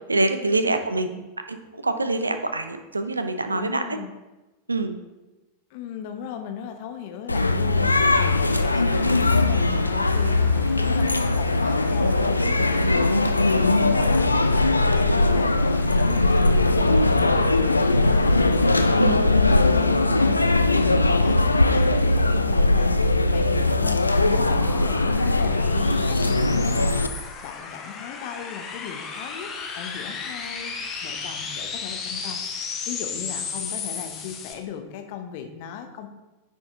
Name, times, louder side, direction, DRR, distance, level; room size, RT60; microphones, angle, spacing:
voice 1, 0.1-1.1 1.5-1.6 1.8-3.8 4.7-5.0 19.0-19.1, right 2 dB, 80° right, 9 dB, 0.6 m, -24 dB
voice 2, 0.6-1.2 3.5-4.1 5.7-36.1, left 8 dB, 50° left, 6 dB, 0.8 m, -38 dB
sound 1, 7.3-27.1, left 2 dB, 80° left, 0.3 m, -20 dB
sound 2, 8.0-18.9, left 2 dB, 10° left, 0.6 m, -43 dB
sound 3, 23.2-34.5, left 5 dB, 30° left, 1.0 m, -35 dB
9.5 x 4.5 x 3.6 m, 1.1 s
figure-of-eight pair, 90°, 0 cm